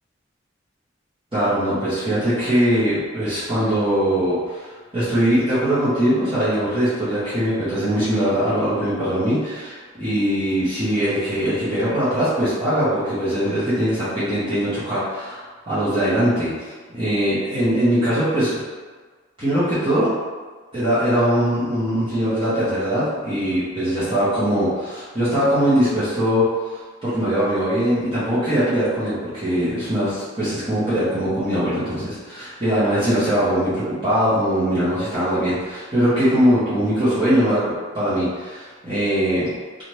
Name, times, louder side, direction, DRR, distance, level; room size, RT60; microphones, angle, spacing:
voice 1, 1.3-16.5 16.9-18.5 19.4-20.1 20.7-26.4 27.0-39.5, equal, 30° right, -13 dB, 1.0 m, -21 dB
2.8 x 2.4 x 3.2 m, 1.4 s
head